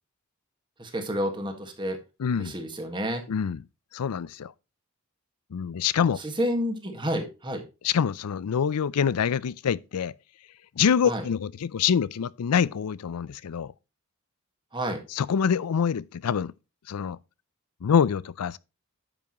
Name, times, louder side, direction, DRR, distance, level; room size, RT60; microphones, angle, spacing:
voice 1, 0.8-2.0 2.3-3.2 6.2-7.6 11.0-11.2 14.7-15.0, equal, 20° right, 1.6 m, -30 dB
voice 2, 2.2-2.5 3.3-3.6 3.9-4.5 5.5-6.2 7.8-10.1 10.8-13.7 15.1-16.5 16.9-17.2 17.8-18.6, left 7 dB, 90° left, 0.4 m, -25 dB
9.9 x 7.2 x 3.0 m
head